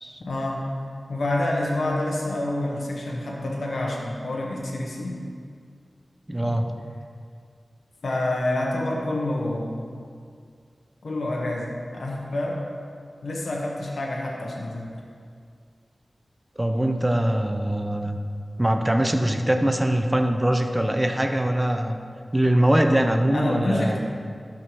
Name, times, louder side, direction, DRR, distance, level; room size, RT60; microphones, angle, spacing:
voice 1, 0.2-0.7 1.1-5.2 6.4-6.6 8.0-9.8 11.0-12.7 13.2-15.0 23.3-24.0, left 1 dB, 80° left, -2 dB, 1.1 m, -28 dB
voice 2, 6.3-6.8 16.6-18.2 18.6-22.0 22.3-24.0, right 1 dB, 15° right, 5 dB, 0.7 m, -22 dB
12.0 x 6.4 x 3.2 m, 2.2 s
cardioid pair, 45°, 0 cm